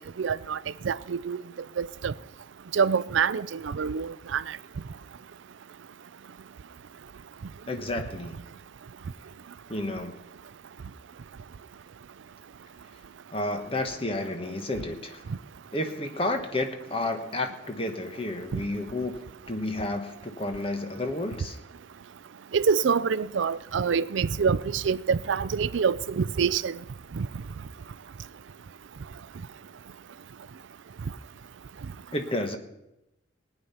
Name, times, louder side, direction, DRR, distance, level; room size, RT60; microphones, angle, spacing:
voice 1, 0.2-0.6 0.8-1.4 1.8-2.1 2.7-4.6 18.5-18.6 22.5-26.8 27.1-27.3, right 6 dB, 80° right, 0.4 m, -26 dB
voice 2, 7.7-8.3 9.7-10.1 13.3-15.2 15.7-19.2 19.5-21.6 32.1-32.6, left 2 dB, 30° left, 1.2 m, -31 dB
19.0 x 9.3 x 5.7 m
head